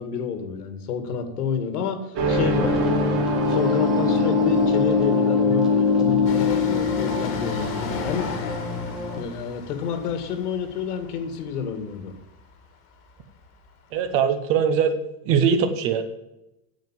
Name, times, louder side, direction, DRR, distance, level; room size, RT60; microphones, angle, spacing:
voice 1, 0.0-3.2 3.5-8.4 9.2-12.1, left 7 dB, 85° left, 8 dB, 2.2 m, -29 dB
sound 1, 2.1-8.5, left 3 dB, 45° right, 3.1 m, -22 dB
sound 2, 2.3-9.2, left 2 dB, ahead, 0.3 m, -31 dB
Train, 6.2-13.7 13.9-14.0, left 4 dB, 30° left, 1.7 m, -37 dB
voice 2, 13.9-14.9 15.3-16.0, right 7 dB, 30° right, 10 dB, 0.8 m, -21 dB
9.2 x 7.5 x 7.4 m, 0.92 s
supercardioid pair, 175°, 45 cm